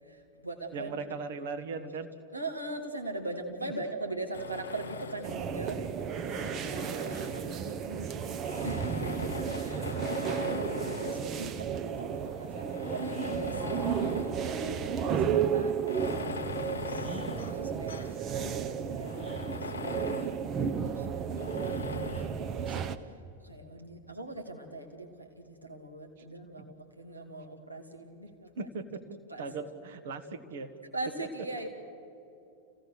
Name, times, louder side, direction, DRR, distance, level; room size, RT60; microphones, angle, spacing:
voice 1, 0.0-1.0 2.3-5.8 6.6-6.8 8.6-14.0 14.4-15.8 16.6-17.2 17.6-19.7 20.1-20.4 20.7-28.7 29.3-29.4 30.9-31.7, right 2 dB, 85° right, 1 dB, 2.2 m, -41 dB
voice 2, 0.7-2.1 3.6-3.7 6.7-8.1 16.8-17.2 26.6-26.7 28.5-30.7 31.2-31.3, right 4 dB, 55° right, 9 dB, 1.5 m, -40 dB
Tools, 4.3-5.5 6.1-7.7 8.4-11.3 12.0-12.1 12.7-14.4 14.8-14.9 15.8-18.2 18.6-18.7 19.0-20.4 21.4-22.4, left 5 dB, 70° left, 0.9 m, -41 dB
sound 1, 5.2-23.0, right 7 dB, 30° right, 0.9 m, -33 dB
28.5 x 17.0 x 6.5 m, 2.8 s
figure-of-eight pair, 90°, 0 cm